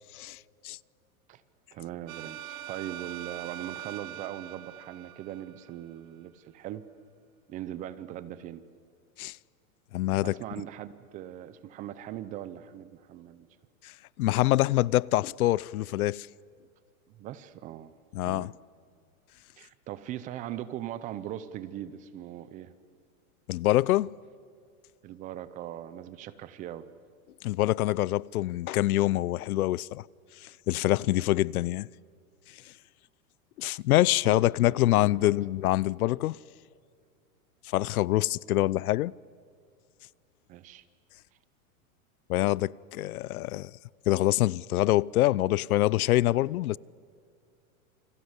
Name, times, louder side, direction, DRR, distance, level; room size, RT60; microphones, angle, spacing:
voice 1, 1.7-6.8 7.5-8.6 10.2-13.5 17.1-17.9 18.2-18.5 19.6-22.7 25.0-26.9 34.2-35.3 40.5-40.8, right 12 dB, 20° right, 0.6 m, -40 dB
sound 1, 2.1-6.0, right 13 dB, 75° right, 0.9 m, -43 dB
voice 2, 9.9-10.4 13.8-13.9 14.2-16.3 18.1-18.5 23.5-24.1 27.4-30.0 30.4-31.9 33.6-36.4 37.6-39.1 42.3-43.7 44.1-46.8, left 16 dB, 80° left, 0.6 m, -25 dB
29.0 x 25.5 x 8.1 m
supercardioid pair, 160°, 43 cm